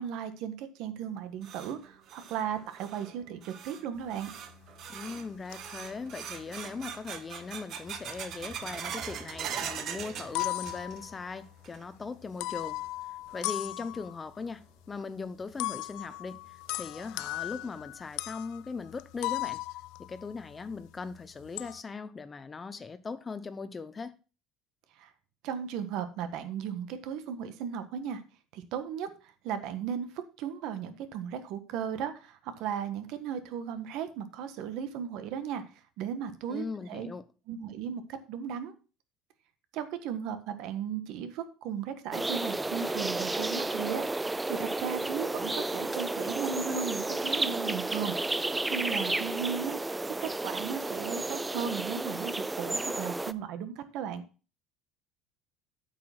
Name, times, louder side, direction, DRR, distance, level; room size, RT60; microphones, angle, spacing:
voice 1, 0.0-4.3 25.0-25.1 25.4-28.2 28.5-29.1 29.4-35.6 36.0-37.1 37.5-38.7 39.7-49.8 50.2-54.2, right 8 dB, 65° right, 1.4 m, -36 dB
sound 1, 1.0-11.2 11.4-12.1 12.4-12.5 13.3-13.4 15.0-15.1 15.5-15.6 16.1-16.2 16.7-16.8 17.3-17.7, right 8 dB, 45° right, 1.3 m, -42 dB
sound 2, 4.0-4.1 4.5-5.0 5.5-6.0 6.3-6.9 7.9-8.3 8.6-9.4 9.8-9.9 10.1-11.6 12.4-14.3 15.6-20.8 21.1-21.8, left 21 dB, 75° left, 0.4 m, -37 dB
voice 2, 4.9-12.8 13.3-19.6 20.0-24.1 36.5-37.2, left 4 dB, 20° left, 0.8 m, -39 dB
sound 3, 42.1-53.3, right 2 dB, 10° right, 0.4 m, -32 dB
8.7 x 5.9 x 6.0 m
cardioid pair, 140°, 0 cm